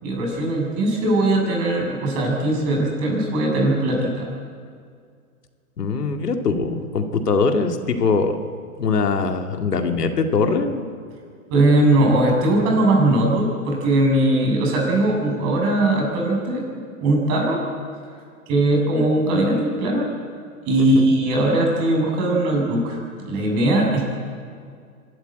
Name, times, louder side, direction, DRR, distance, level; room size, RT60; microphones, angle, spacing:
voice 1, 0.0-4.3 11.5-16.6 17.0-17.6 18.5-20.1 20.7-23.0 23.3-24.0, right 1 dB, 35° right, 0 dB, 7.1 m, -20 dB
voice 2, 5.8-8.4 8.8-10.9 20.8-21.1, left 4 dB, 85° left, 5 dB, 2.3 m, -22 dB
25.5 x 12.5 x 9.1 m, 2.1 s
hypercardioid pair, 135°, 46 cm